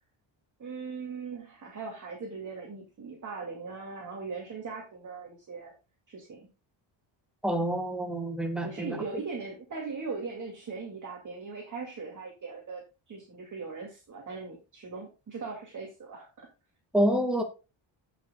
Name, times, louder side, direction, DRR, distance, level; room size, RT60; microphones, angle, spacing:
voice 1, 0.6-5.7 6.1-6.5 8.6-16.5, right 4 dB, 40° right, 2.4 m, -39 dB
voice 2, 7.4-9.0 16.9-17.4, right 1 dB, ahead, 1.5 m, -27 dB
16.5 x 6.0 x 2.3 m
wide cardioid pair, 175°, 48 cm